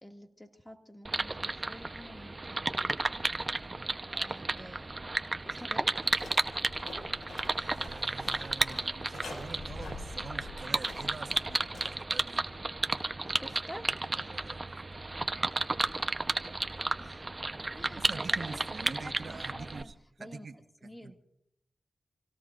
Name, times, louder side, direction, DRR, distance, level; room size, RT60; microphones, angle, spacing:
voice 1, 0.0-2.8 4.1-5.1 5.4-6.2 13.2-13.9 17.0-17.3 17.7-19.9 20.2-20.5 20.8-21.2, equal, 10° left, 4 dB, 2.3 m, -49 dB
sound 1, 1.0-19.8, right 2 dB, 35° right, 1.0 m, -33 dB
sound 2, 6.0-11.9, left 2 dB, 70° left, 6.3 m, -46 dB
voice 2, 7.4-12.4 14.1-14.8 17.9-21.1, right 4 dB, 65° right, 8 dB, 1.4 m, -46 dB
27.5 x 17.5 x 2.6 m, 0.73 s
cardioid pair, 45°, 0 cm